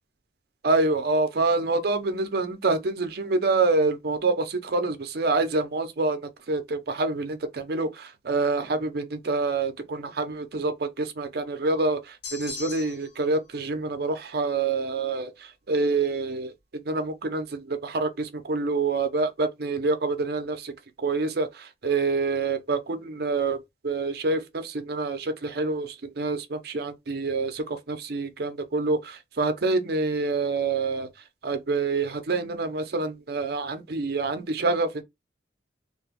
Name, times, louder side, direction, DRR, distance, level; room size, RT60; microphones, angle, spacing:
voice 1, 0.6-20.7 21.0-23.6 23.8-31.1 31.4-35.0, right 3 dB, 60° right, 0.6 m, -27 dB
sound 1, 12.2-13.2, left 5 dB, 55° left, 1.1 m, -38 dB
2.4 x 2.2 x 4.0 m
head